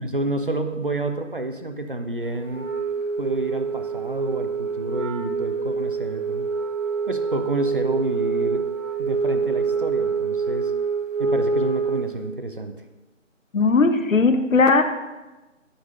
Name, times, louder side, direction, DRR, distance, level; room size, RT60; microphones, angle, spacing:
voice 1, 0.0-2.7 3.2-6.5 7.1-8.6 9.0-10.7 11.2-12.7, right 2 dB, 45° right, 7 dB, 0.6 m, -29 dB
Wind instrument woodwind instrument, 2.5-12.2, right 5 dB, 80° right, 1.6 m, -26 dB
voice 2, 13.5-14.8, left 4 dB, 80° left, 9 dB, 0.9 m, -18 dB
9.9 x 6.9 x 2.6 m, 1.1 s
figure-of-eight pair, 175°, 39 cm